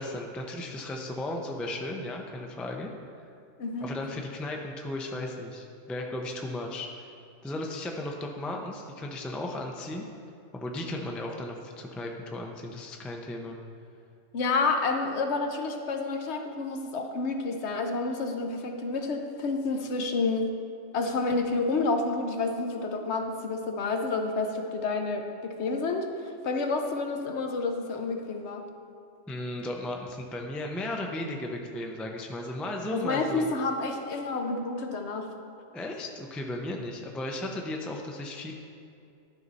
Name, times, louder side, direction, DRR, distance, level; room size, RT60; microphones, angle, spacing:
voice 1, 0.0-2.9 3.8-7.1 7.4-10.0 10.5-13.6 29.3-33.5 35.7-38.5, left 1 dB, ahead, 1 dB, 0.3 m, -35 dB
voice 2, 14.3-20.5 20.9-28.6 32.9-35.3, left 3 dB, 70° left, 4 dB, 1.0 m, -29 dB
11.5 x 5.4 x 4.0 m, 2.5 s
omnidirectional pair, 1.2 m